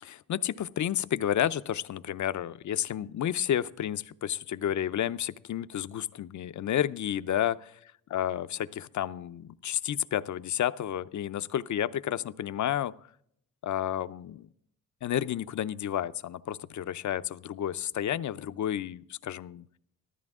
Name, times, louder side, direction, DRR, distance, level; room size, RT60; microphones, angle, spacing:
voice 1, 0.0-7.8 8.1-12.9 13.6-14.5 15.0-19.6, left 10 dB, 55° left, 14 dB, 0.6 m, -31 dB
14.5 x 13.0 x 3.6 m, 0.68 s
cardioid pair, 95°, 34 cm